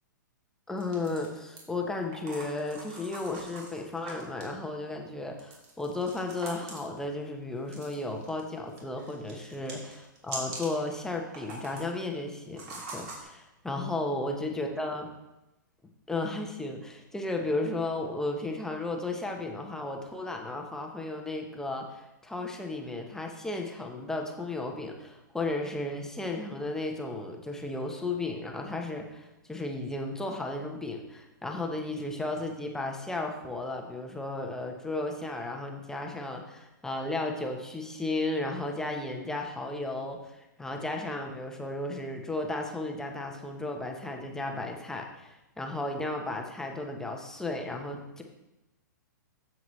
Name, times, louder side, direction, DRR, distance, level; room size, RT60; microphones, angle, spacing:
voice 1, 0.7-15.1 16.1-48.2, left 2 dB, 5° left, 2 dB, 1.0 m, -34 dB
sound 1, 0.8-1.6 2.1-4.5 5.4-7.0 7.7-8.4 8.7-10.8 11.2-11.9 12.6-13.2, right 2 dB, 45° right, 2.6 m, -43 dB
9.2 x 7.2 x 3.2 m, 0.95 s
hypercardioid pair, 125°, 11 cm